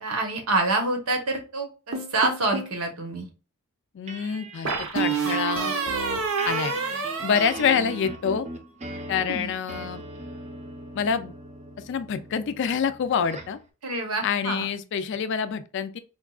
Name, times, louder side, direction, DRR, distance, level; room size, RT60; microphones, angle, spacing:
voice 1, 0.0-3.3 9.2-9.5 13.8-14.6, right 2 dB, 85° right, 1.0 m, -27 dB
sound 1, 1.9-2.8 4.7-8.3, right 5 dB, 65° right, 0.7 m, -28 dB
voice 2, 3.9-5.8 6.4-6.7 7.2-8.5 9.1-10.0 10.9-11.3 11.9-13.6 14.2-16.0, left 7 dB, 55° left, 0.3 m, -26 dB
sound 2, 4.1-13.6, right 2 dB, 30° right, 0.5 m, -39 dB
4.4 x 2.3 x 2.3 m
head